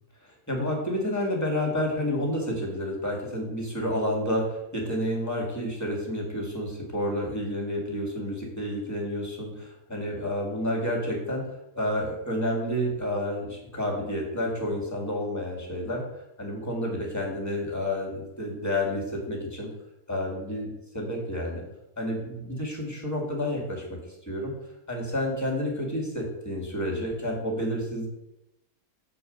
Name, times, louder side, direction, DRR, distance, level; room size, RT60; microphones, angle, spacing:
voice 1, 0.5-11.5 11.8-16.0 16.4-19.7 20.1-21.6 22.0-24.0 24.2-24.5 24.9-28.1, left 1 dB, 10° left, -1 dB, 1.7 m, -30 dB
7.4 x 4.6 x 5.1 m, 0.89 s
omnidirectional pair, 1.7 m